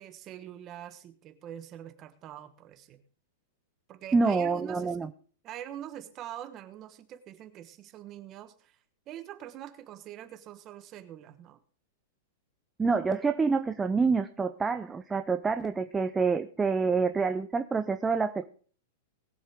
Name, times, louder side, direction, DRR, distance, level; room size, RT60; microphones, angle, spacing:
voice 1, 0.0-3.0 3.9-5.0 5.4-11.6, right 11 dB, 25° right, 9 dB, 1.2 m, -44 dB
voice 2, 4.1-5.1 12.8-18.5, right 4 dB, 10° right, 8 dB, 0.4 m, -27 dB
20.0 x 7.3 x 3.6 m, 0.43 s
supercardioid pair, 165°, 0 cm